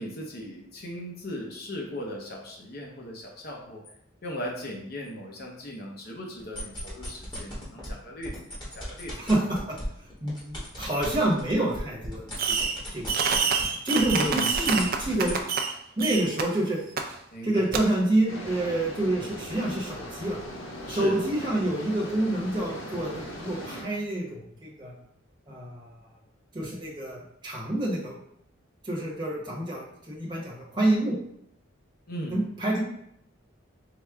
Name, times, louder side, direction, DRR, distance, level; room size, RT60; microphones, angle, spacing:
voice 1, 0.0-3.8 4.2-9.1 14.2-14.5 17.3-17.7 20.9-21.2 32.1-32.4, equal, 50° left, 0 dB, 0.7 m, -38 dB
sound 1, 6.4-7.9 8.2-13.7 14.0-15.4, left 1 dB, 25° left, 1.2 m, -38 dB
voice 2, 9.2-9.8 10.0-13.4 13.8-15.4 16.0-16.8 17.4-20.4 20.9-24.9 25.5-26.0 26.5-28.1 28.8-31.2 32.3-32.9, right 1 dB, 25° right, -4 dB, 0.9 m, -28 dB
Fireworks, 12.4-12.8 13.1-15.7 16.0-16.4 17.0-17.1 17.7-17.8, right 5 dB, 50° right, 0.4 m, -26 dB
sound 2, 18.3-23.8, equal, 85° left, 0.9 m, -39 dB
4.7 x 2.2 x 3.5 m, 0.73 s
head